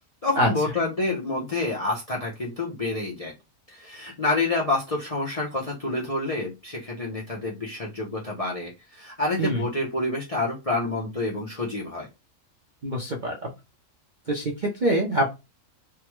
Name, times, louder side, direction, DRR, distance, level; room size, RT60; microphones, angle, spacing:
voice 1, 0.2-3.3 3.7-12.1, left 2 dB, 35° left, -2 dB, 0.6 m, -28 dB
voice 2, 12.8-13.5 14.3-15.3, right 1 dB, 50° right, 0 dB, 0.6 m, -24 dB
3.4 x 2.2 x 3.0 m, 0.24 s
omnidirectional pair, 1.5 m